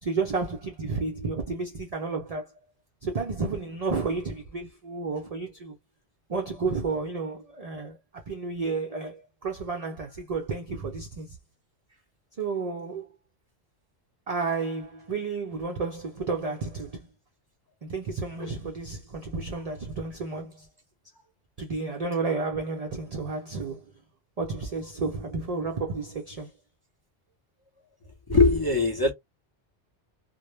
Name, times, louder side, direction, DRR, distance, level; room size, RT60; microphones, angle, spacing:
voice 1, 0.0-2.5 3.0-5.8 6.3-11.4 12.4-13.1 14.3-17.1 17.8-20.7 21.6-23.8 24.4-26.5, right 4 dB, 60° right, 0.4 m, -31 dB
voice 2, 28.3-29.1, left 3 dB, 25° left, 0.5 m, -21 dB
2.1 x 2.0 x 3.0 m
omnidirectional pair, 1.2 m